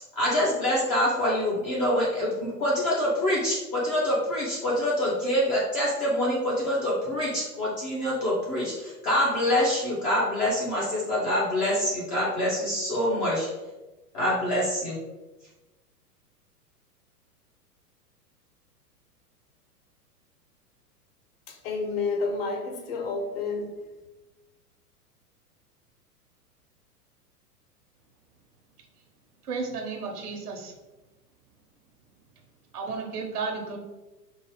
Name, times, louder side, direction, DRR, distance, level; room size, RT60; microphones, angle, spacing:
voice 1, 0.2-13.5 14.1-15.0, left 1 dB, 20° left, -6 dB, 0.4 m, -25 dB
voice 2, 21.5-24.0, left 4 dB, 40° left, 3 dB, 0.7 m, -30 dB
voice 3, 29.4-30.7 32.7-33.8, right 4 dB, 70° right, 2 dB, 1.0 m, -33 dB
4.6 x 2.4 x 3.1 m, 1.1 s
figure-of-eight pair, 100°, 47 cm